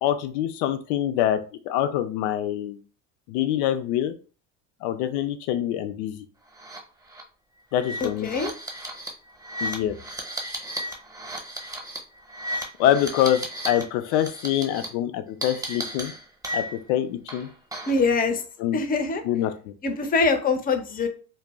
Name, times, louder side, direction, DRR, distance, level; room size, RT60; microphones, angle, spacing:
voice 1, 0.0-2.8 3.3-4.1 4.8-6.2 7.7-8.3 9.6-9.9 12.8-16.1 16.5-17.5 18.6-18.8 19.2-19.7, left 11 dB, 80° left, 9 dB, 0.5 m, -25 dB
sound 1, 6.6-6.8 7.1-7.2 7.7-13.8 14.1-14.8 15.4-16.9 17.3-18.0, equal, 10° right, 0.8 m, -34 dB
voice 2, 8.0-8.5 17.9-18.4 18.7-19.2 19.8-21.1, left 4 dB, 25° left, 7 dB, 0.5 m, -23 dB
2.3 x 2.0 x 3.4 m, 0.37 s
supercardioid pair, 95°, 34 cm